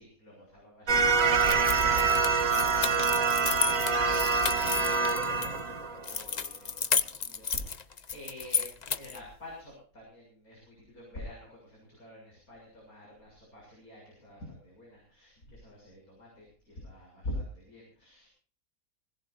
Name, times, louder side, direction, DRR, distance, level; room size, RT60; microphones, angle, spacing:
voice 1, 0.0-5.4 5.6-18.3, left 1 dB, 80° left, -3 dB, 7.6 m, -47 dB
sound 1, 0.9-6.3, right 5 dB, 65° right, 1.7 m, -25 dB
sound 2, 1.4-5.5 6.0-9.2, left 6 dB, 40° left, 0.6 m, -33 dB
20.5 x 20.0 x 2.6 m, 0.42 s
omnidirectional pair, 1.5 m